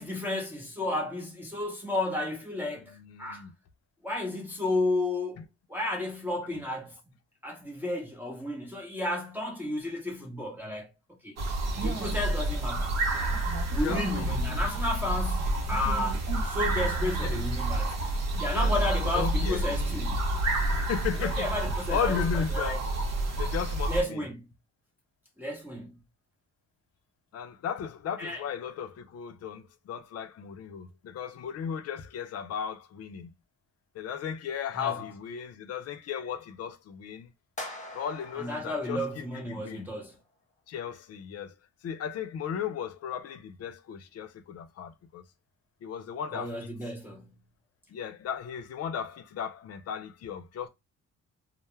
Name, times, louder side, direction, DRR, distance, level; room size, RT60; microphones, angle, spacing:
voice 1, 0.0-3.4 4.0-5.4 5.7-7.0 7.4-10.9 11.2-11.3 11.7-13.0 13.7-18.0 18.4-20.2 21.2-22.8 23.9-24.5 25.4-25.9 28.2-28.4 34.8-34.9 38.3-40.2 46.3-47.3, left 1 dB, 5° right, 0.7 m, -32 dB
voice 2, 2.8-3.6 5.4-5.5 13.8-14.3 17.2-17.3 18.5-19.6 20.8-21.5 21.9-22.8 23.4-24.2 27.3-33.3 33.9-37.3 37.9-39.9 40.7-41.5 41.8-45.2 45.8-46.7 47.9-50.7, left 8 dB, 55° left, 0.5 m, -35 dB
sound 1, 11.4-24.0, right 2 dB, 60° right, 0.9 m, -29 dB
sound 2, 37.6-39.8, left 2 dB, 25° left, 0.9 m, -43 dB
2.2 x 2.1 x 3.0 m
cardioid pair, 90°, 30 cm